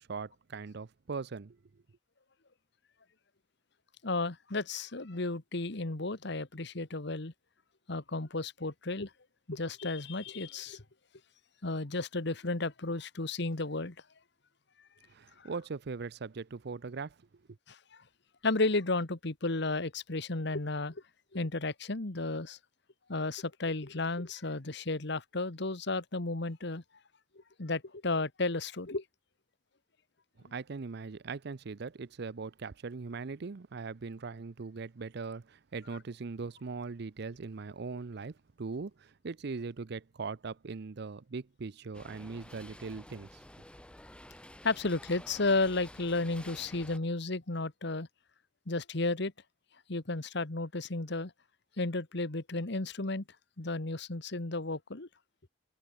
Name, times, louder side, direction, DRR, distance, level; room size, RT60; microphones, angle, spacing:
voice 1, 0.0-1.6 15.1-17.2 30.5-43.4, right 4 dB, 60° right, 0.6 m, -40 dB
voice 2, 4.0-7.3 7.9-9.1 9.5-10.8 11.6-13.9 17.7-17.8 18.4-21.0 21.3-22.6 23.1-26.8 27.6-29.0 44.6-48.1 48.7-49.3 49.9-51.3 51.8-53.2 53.6-55.1, left 3 dB, 65° left, 1.6 m, -33 dB
sound 1, 41.9-47.0, left 1 dB, 5° left, 1.1 m, -51 dB
head